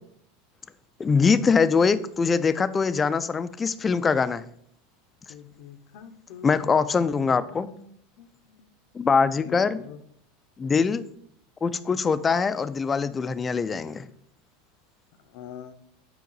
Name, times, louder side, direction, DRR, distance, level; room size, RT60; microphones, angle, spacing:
voice 1, 1.0-4.4 6.4-7.7 8.9-9.8 10.6-11.0 11.6-14.1, left 5 dB, 25° left, 14 dB, 0.4 m, -23 dB
voice 2, 5.3-8.7 9.2-10.0 15.2-15.7, left 7 dB, 65° left, 9 dB, 0.7 m, -45 dB
7.7 x 5.1 x 4.0 m, 0.68 s
hypercardioid pair, 100°, 0 cm